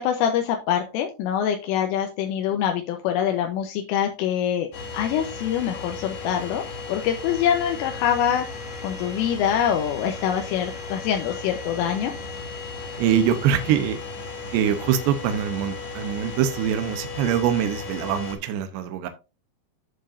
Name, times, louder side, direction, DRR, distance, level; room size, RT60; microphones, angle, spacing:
voice 1, 0.0-4.7 4.9-6.6 6.9-8.5 8.8-12.1, left 9 dB, 80° left, 4 dB, 3.4 m, -24 dB
sound 1, 4.7-18.4, left 3 dB, 60° left, 3.8 m, -35 dB
voice 2, 13.0-14.0 14.5-19.1, right 9 dB, 80° right, 8 dB, 2.6 m, -23 dB
14.0 x 5.4 x 2.6 m, 0.29 s
omnidirectional pair, 5.9 m